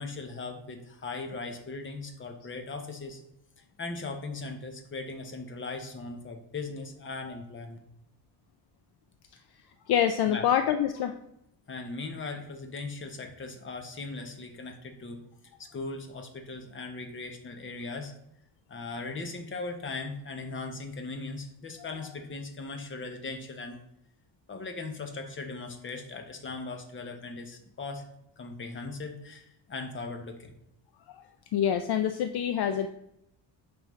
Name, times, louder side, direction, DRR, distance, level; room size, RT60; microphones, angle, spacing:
voice 1, 0.0-3.2 3.8-7.8 10.3-10.5 11.7-15.2 15.6-18.1 18.7-23.8 24.5-28.0 28.4-30.5, left 3 dB, 25° left, 5 dB, 0.9 m, -39 dB
voice 2, 9.9-11.1 31.1-31.2 31.5-32.9, left 9 dB, 55° left, 8 dB, 0.5 m, -26 dB
8.8 x 5.3 x 3.1 m, 0.81 s
cardioid pair, 170°, 46 cm